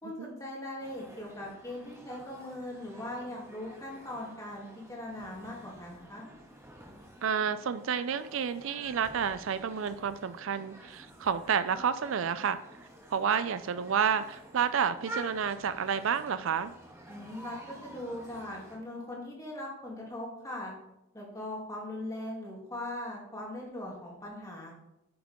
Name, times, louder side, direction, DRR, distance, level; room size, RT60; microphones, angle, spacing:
voice 1, 0.0-6.3 17.1-20.7 21.1-24.7, left 1 dB, 15° left, -4 dB, 2.6 m, -40 dB
sound 1, 0.8-18.8, right 1 dB, 15° right, 2.2 m, -49 dB
voice 2, 7.2-12.6 13.1-16.7, right 7 dB, 60° right, 13 dB, 0.4 m, -30 dB
9.5 x 7.4 x 3.7 m, 0.87 s
head